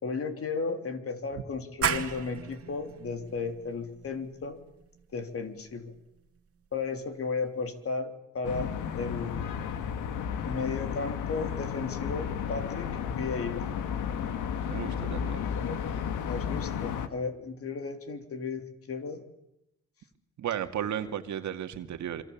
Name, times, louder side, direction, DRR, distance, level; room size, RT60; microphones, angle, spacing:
voice 1, 0.0-4.6 5.1-5.9 6.7-9.5 10.4-13.7 15.3-19.2, left 4 dB, 50° left, 6 dB, 3.3 m, -35 dB
sound 1, 1.8-7.2, right 7 dB, 50° right, 2.2 m, -36 dB
sound 2, 8.4-17.1, left 8 dB, 85° left, 1.9 m, -33 dB
voice 2, 14.7-15.4 20.4-22.2, right 10 dB, 70° right, 7 dB, 2.1 m, -34 dB
27.0 x 24.5 x 7.3 m, 0.87 s
cardioid pair, 90°, 30 cm